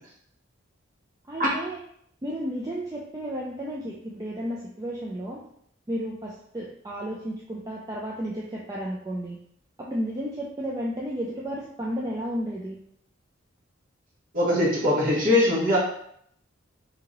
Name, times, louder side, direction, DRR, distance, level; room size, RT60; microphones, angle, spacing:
voice 1, 1.3-1.8 2.2-5.4 5.9-9.4 9.8-12.8, equal, 20° right, -4 dB, 0.3 m, -32 dB
voice 2, 14.3-15.8, left 1 dB, 45° right, -5 dB, 1.1 m, -21 dB
3.0 x 2.8 x 3.8 m, 0.68 s
head